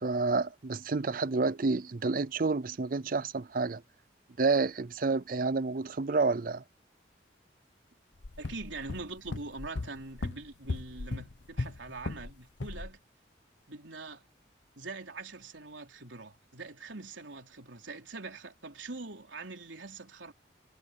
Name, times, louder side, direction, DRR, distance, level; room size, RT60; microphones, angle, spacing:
voice 1, 0.0-3.8 4.4-6.6, right 4 dB, 45° right, 0.5 m, -29 dB
sound 1, 8.2-12.3 12.6-12.9, left 2 dB, 75° left, 0.9 m, -37 dB
voice 2, 8.4-13.0 13.7-14.2 14.8-20.3, right 3 dB, 80° right, 3.7 m, -43 dB
head